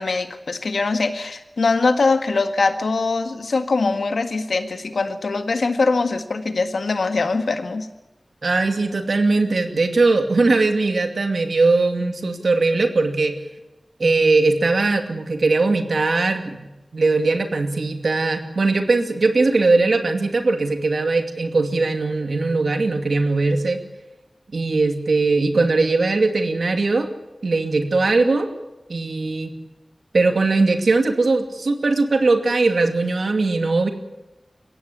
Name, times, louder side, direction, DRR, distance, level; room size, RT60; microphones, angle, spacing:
voice 1, 0.0-7.9, left 3 dB, 90° left, 8 dB, 1.7 m, -22 dB
voice 2, 8.4-13.4 14.0-16.7 16.9-23.8 24.5-27.1 27.4-28.5 28.9-29.5 30.1-33.9, right 3 dB, 80° right, 6 dB, 2.5 m, -20 dB
22.5 x 16.5 x 8.6 m, 1.0 s
wide cardioid pair, 45°, 0 cm